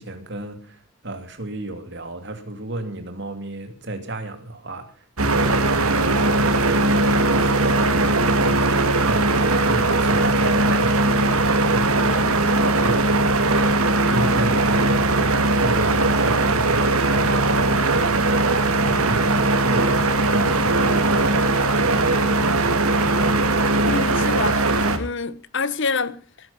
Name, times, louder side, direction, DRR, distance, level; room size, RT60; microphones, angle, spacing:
voice 1, 0.0-22.9, right 1 dB, 50° right, 3.0 m, -33 dB
sound 1, 5.2-25.0, right 2 dB, 80° right, 2.3 m, -19 dB
voice 2, 23.9-26.5, left 4 dB, 55° left, 1.2 m, -27 dB
20.5 x 11.0 x 5.9 m
head